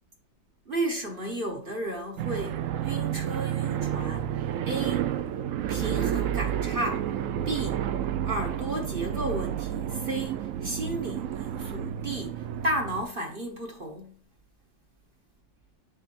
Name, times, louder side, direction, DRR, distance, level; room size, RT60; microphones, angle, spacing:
voice 1, 0.7-4.3 4.7-5.1 5.7-7.1 7.5-7.9 8.2-14.1, right 1 dB, 35° right, 1.1 m, -33 dB
sound 1, 2.2-13.0, right 10 dB, 70° right, 0.7 m, -30 dB
7.7 x 5.9 x 2.5 m
omnidirectional pair, 2.0 m